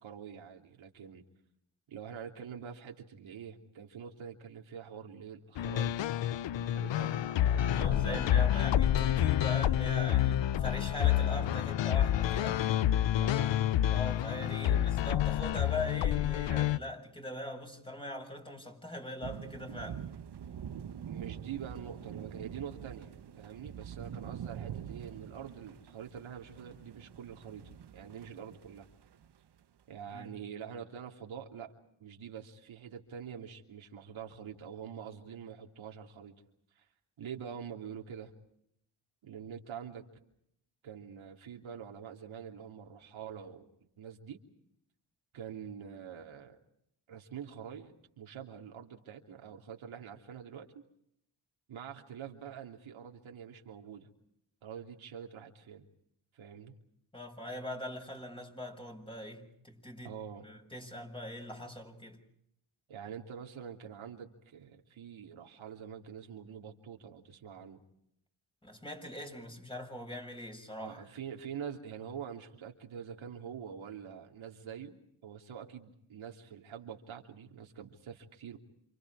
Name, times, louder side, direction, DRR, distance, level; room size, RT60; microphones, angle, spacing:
voice 1, 0.0-1.2 1.9-6.0 6.5-8.6 13.1-13.6 14.6-14.9 21.1-28.9 29.9-31.7 32.0-36.4 36.7-36.8 37.2-38.3 39.2-40.0 40.8-43.7 44.0-44.4 45.3-46.6 47.1-50.8 51.7-54.1 54.6-55.9 56.3-56.7 60.0-60.5 62.9-67.8 70.8-78.6, right 8 dB, 70° right, 3.2 m, -45 dB
sound 1, 5.6-16.8, left 11 dB, 60° left, 0.9 m, -28 dB
voice 2, 7.7-12.7 13.9-20.1 30.1-30.3 57.1-60.2 60.4-62.2 68.6-71.1, left 1 dB, 10° left, 6.6 m, -41 dB
sound 2, 19.2-29.3, right 9 dB, 55° right, 1.4 m, -45 dB
29.5 x 27.0 x 4.8 m
cardioid pair, 75°, 50 cm